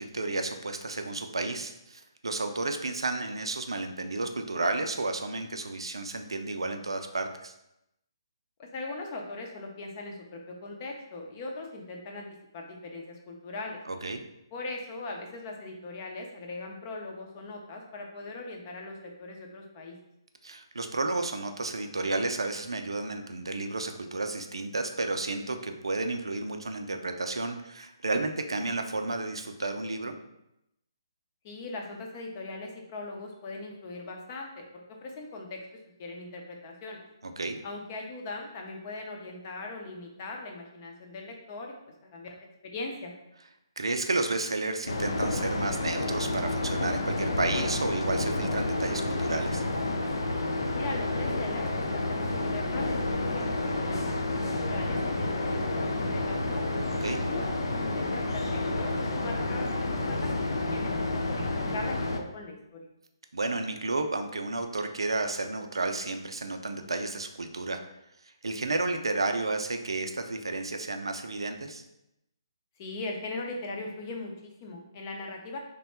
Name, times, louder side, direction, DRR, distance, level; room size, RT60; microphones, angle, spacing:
voice 1, 0.0-7.5 13.9-14.2 20.4-30.2 37.2-37.6 43.8-49.6 57.0-57.2 63.3-67.8 68.4-71.8, right 2 dB, 85° right, 6 dB, 0.4 m, -32 dB
voice 2, 8.6-12.3 12.5-13.8 14.5-20.0 31.4-34.7 35.0-35.6 36.0-37.0 37.6-41.7 42.0-42.3 42.6-43.1 50.7-56.6 57.1-61.4 61.7-62.9 72.8-75.6, left 2 dB, 35° left, 1 dB, 0.7 m, -40 dB
sound 1, 44.9-62.2, left 2 dB, 70° left, 0.5 m, -30 dB
3.3 x 2.2 x 4.3 m, 0.85 s
figure-of-eight pair, 145°, 3 cm